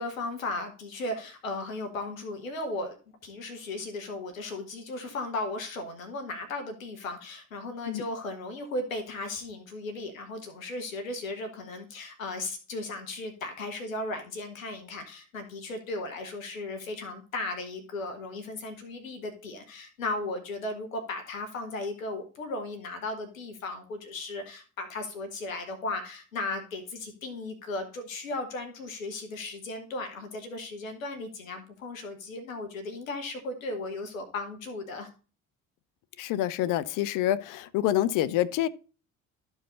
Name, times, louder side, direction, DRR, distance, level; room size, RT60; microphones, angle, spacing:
voice 1, 0.0-3.0 3.2-35.1, left 2 dB, 85° left, 1.0 m, -36 dB
voice 2, 36.2-38.7, left 13 dB, 55° left, 0.6 m, -27 dB
12.5 x 4.7 x 3.9 m
figure-of-eight pair, 50°, 39 cm